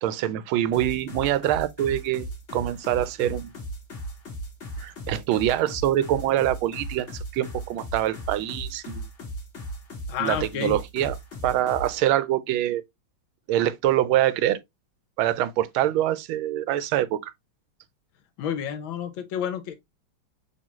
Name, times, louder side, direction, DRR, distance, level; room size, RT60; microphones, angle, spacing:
voice 1, 0.0-3.5 4.8-9.1 10.2-11.2 11.4-12.8 13.5-14.6 15.2-17.3, right 12 dB, 85° right, 1.4 m, -25 dB
sound 1, 0.7-12.0, right 1 dB, 40° left, 1.5 m, -37 dB
voice 2, 10.1-10.8 18.4-19.7, left 8 dB, 75° left, 1.4 m, -30 dB
6.9 x 2.6 x 2.9 m
omnidirectional pair, 2.2 m